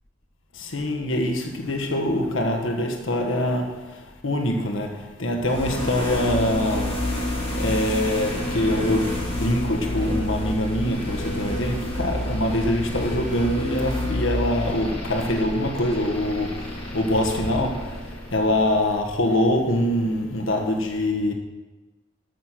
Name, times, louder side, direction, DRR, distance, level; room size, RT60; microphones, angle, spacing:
voice 1, 0.5-7.1 7.5-21.3, left 1 dB, 85° left, 1.4 m, -24 dB
sound 1, 5.4-19.3, left 1 dB, 30° left, 2.4 m, -29 dB
13.5 x 6.6 x 6.2 m
head